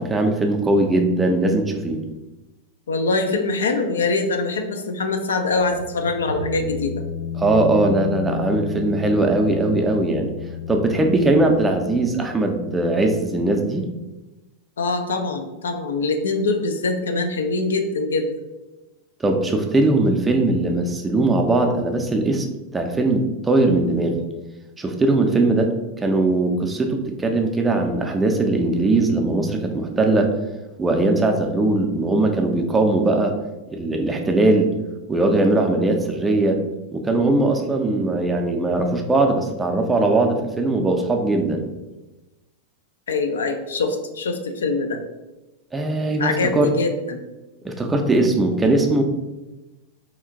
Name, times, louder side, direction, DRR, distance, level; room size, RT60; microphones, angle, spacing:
voice 1, 0.0-2.0 7.4-10.3 10.7-13.9 19.2-22.5 22.7-24.1 24.8-25.7 26.0-30.3 30.8-33.3 33.7-34.7 35.1-36.6 36.9-41.7 45.7-46.7 47.6-49.0, right 2 dB, 15° right, 4 dB, 0.4 m, -20 dB
voice 2, 2.9-7.0 14.8-18.3 43.1-45.0 46.2-47.2 48.0-48.2, left 3 dB, 65° left, 5 dB, 0.3 m, -23 dB
sound 1, 5.5-12.9, left 8 dB, 85° right, 0.4 m, -32 dB
2.9 x 2.4 x 3.7 m, 1.1 s
figure-of-eight pair, 90°, 0 cm